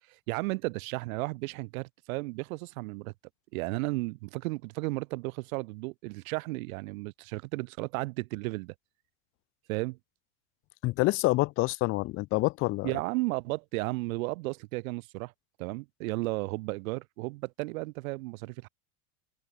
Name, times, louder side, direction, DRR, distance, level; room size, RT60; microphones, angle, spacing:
voice 1, 0.1-3.1 3.5-8.7 9.7-10.0 12.8-15.3 15.6-18.7, right 23 dB, 75° right, 2.5 m, -34 dB
voice 2, 10.8-12.9, left 21 dB, 30° left, 0.5 m, -27 dB
supercardioid pair, 150°, 42 cm